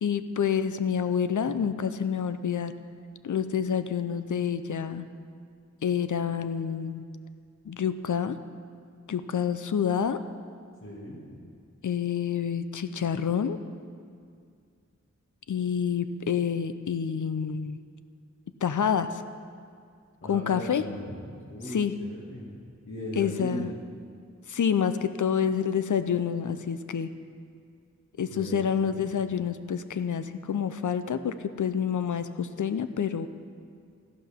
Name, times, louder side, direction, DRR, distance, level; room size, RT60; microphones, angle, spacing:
voice 1, 0.0-2.7 3.2-5.0 5.8-7.0 7.7-8.4 9.1-10.2 11.8-13.6 15.5-17.8 18.6-19.1 20.3-20.8 21.7-21.9 23.2-23.7 24.5-27.1 28.2-33.3, left 7 dB, 80° left, 11 dB, 0.6 m, -28 dB
voice 2, 10.8-11.4 20.2-23.7 28.3-28.6 28.9-29.0, equal, 45° left, -7 dB, 2.2 m, -38 dB
14.0 x 11.5 x 3.6 m, 2.2 s
wide cardioid pair, 50°, 30 cm